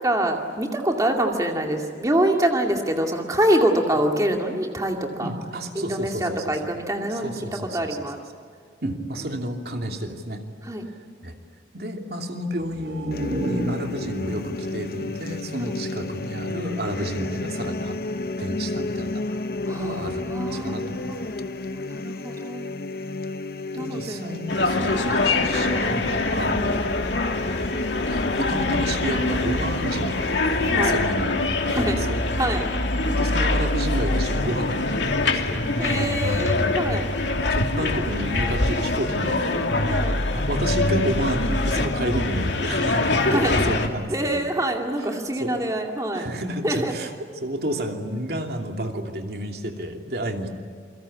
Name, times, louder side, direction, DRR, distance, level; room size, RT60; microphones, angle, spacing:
voice 1, 0.0-5.3 5.8-8.2 8.8-9.0 10.6-10.9 15.6-15.8 17.0-17.1 19.7-22.7 23.8-24.4 24.8-25.4 26.4-26.5 30.6-31.0 31.7-32.0 32.3-32.7 35.8-37.1 39.9-40.2 43.2-43.5 44.1-46.3 46.6-46.9, right 1 dB, 20° right, 2 dB, 2.3 m, -26 dB
voice 2, 5.2-6.7 7.1-8.0 8.8-10.4 11.2-11.4 11.7-18.0 18.4-19.5 19.8-21.0 23.7-26.8 28.1-32.2 33.1-36.0 36.4-36.6 37.5-39.7 40.3-44.4 45.4-45.6 46.1-47.1 47.4-50.5, right 1 dB, 60° right, 3 dB, 2.8 m, -31 dB
sound 1, 12.5-16.3 16.6-16.7, equal, 85° right, 6.1 m, -33 dB
sound 2, 13.1-30.6, left 2 dB, 55° left, 0.9 m, -32 dB
sound 3, 24.5-43.9, left 2 dB, 85° left, 2.8 m, -24 dB
28.5 x 24.0 x 8.6 m, 2.1 s
head